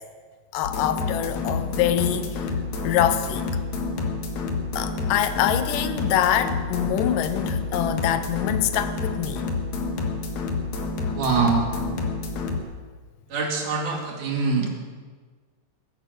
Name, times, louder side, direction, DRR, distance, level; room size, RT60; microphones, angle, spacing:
voice 1, 0.5-2.5 2.8-3.4 4.8-9.4, left 11 dB, 80° left, 2.3 m, -24 dB
sound 1, 0.6-12.6, left 3 dB, 60° left, 2.7 m, -29 dB
voice 2, 11.1-11.6 13.3-14.7, right 4 dB, 65° right, 3.7 m, -24 dB
21.5 x 9.1 x 6.5 m
omnidirectional pair, 3.9 m